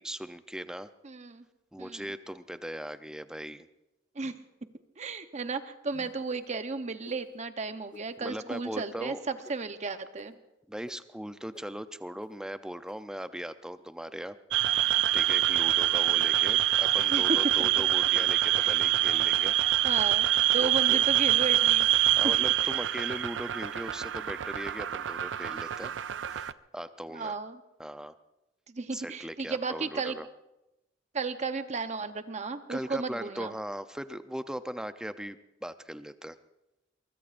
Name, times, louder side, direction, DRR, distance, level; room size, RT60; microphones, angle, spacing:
voice 1, 0.0-0.9 1.7-3.7 8.2-9.2 10.7-14.4 15.1-19.6 20.6-21.0 22.2-25.9 26.2-27.3 27.8-28.1 28.9-30.3 32.7-36.4, equal, 5° right, 11 dB, 0.6 m, -39 dB
voice 2, 1.0-1.4 1.8-2.0 4.2-4.3 5.0-10.4 17.1-17.2 17.6-17.7 18.6-18.8 19.8-20.3 20.5-21.9 22.2-22.3 27.1-27.6 28.7-30.2 31.1-33.5, right 4 dB, 40° right, 9 dB, 0.9 m, -34 dB
sound 1, 5.9-6.3 7.0-7.2 7.9-8.0 8.7-8.8 9.4-9.5 10.2-10.3 10.9-11.0 11.5-11.6 12.2-12.3 12.9-13.0, left 1 dB, 25° left, 1.1 m, -51 dB
sound 2, 14.5-26.5, right 12 dB, 75° right, 0.4 m, -25 dB
23.0 x 22.0 x 2.5 m, 0.95 s
head